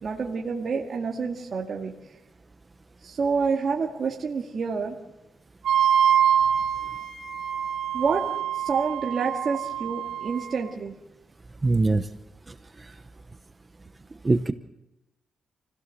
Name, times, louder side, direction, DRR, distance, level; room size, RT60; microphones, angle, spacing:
voice 1, 0.0-1.9 3.0-5.0 7.9-8.2 8.5-10.9, right 5 dB, 40° right, -1 dB, 2.1 m, -28 dB
Wind instrument woodwind instrument, 5.6-10.6, right 9 dB, 75° right, 2.2 m, -25 dB
voice 2, 11.6-12.1 14.2-14.5, right 3 dB, 20° right, 9 dB, 0.8 m, -21 dB
28.5 x 16.5 x 6.5 m, 0.95 s
cardioid pair, 145°, 0 cm